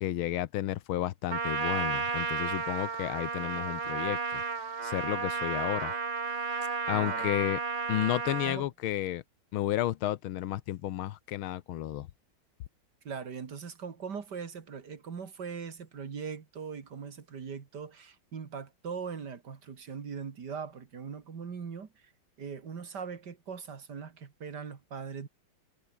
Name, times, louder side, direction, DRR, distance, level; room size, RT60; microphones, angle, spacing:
voice 1, 0.0-4.4 4.8-5.9 6.9-7.6 7.9-9.2 9.5-12.1, left 14 dB, 85° left, 1.6 m, -32 dB
Trumpet, 1.3-8.6, right 5 dB, 85° right, 4.1 m, -33 dB
voice 2, 6.9-7.3 8.4-8.7 13.0-22.1 22.4-25.3, right 6 dB, 55° right, 2.6 m, -40 dB
omnidirectional pair, 2.3 m